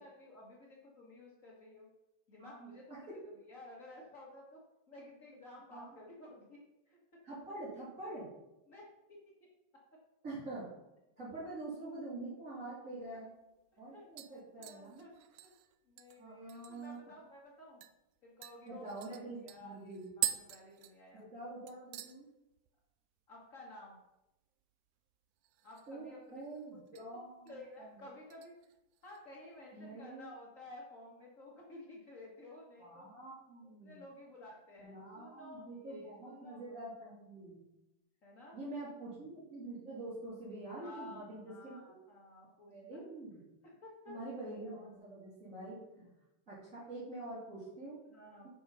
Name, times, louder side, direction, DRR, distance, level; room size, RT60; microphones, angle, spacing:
voice 1, 0.0-1.9 2.3-4.6 4.9-6.6 6.9-7.0 8.7-9.3 13.1-13.2 13.7-15.1 15.4-15.5 15.8-17.8 18.2-21.2 23.3-24.0 25.6-26.4 26.7-27.0 27.4-28.5 29.0-33.1 33.6-36.9 38.2-38.6 40.8-43.1 43.6-44.2 48.1-48.5, left 2 dB, 60° left, -3 dB, 0.8 m, -54 dB
voice 2, 2.4-2.8 3.1-3.2 5.7-6.0 7.2-8.3 10.2-10.6 11.2-13.3 13.8-15.1 16.2-17.0 18.6-20.1 21.1-22.3 25.9-27.5 27.8-27.9 29.7-30.3 32.8-34.0 34.8-37.6 38.5-42.0 42.7-43.4 44.1-46.1 46.5-48.0, right 2 dB, 25° right, -9 dB, 2.6 m, -46 dB
sound 1, 13.1-13.2 13.6-13.9 14.2-17.0 17.3-17.4 17.8-18.0 18.4-21.4 21.7-22.2 22.5-22.9 23.2-23.3 25.4-26.0 26.3-27.1 27.5-27.8 28.3-29.2 29.6-29.7, right 13 dB, 80° right, 1.8 m, -43 dB
9.3 x 5.5 x 5.5 m, 0.95 s
omnidirectional pair, 4.1 m